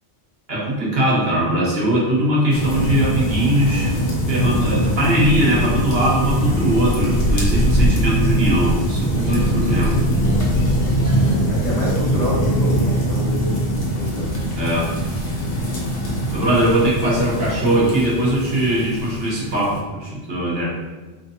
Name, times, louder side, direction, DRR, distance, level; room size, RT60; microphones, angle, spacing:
voice 1, 0.5-4.0 4.3-10.0 14.5-14.9 16.3-20.7, right 1 dB, 65° right, -5 dB, 1.3 m, -20 dB
sound 1, 2.5-19.8, equal, 60° left, 1.1 m, -21 dB
voice 2, 11.2-13.6 14.0-14.3, left 1 dB, 40° left, -7 dB, 1.3 m, -27 dB
4.4 x 3.3 x 2.8 m, 1.3 s
omnidirectional pair, 1.1 m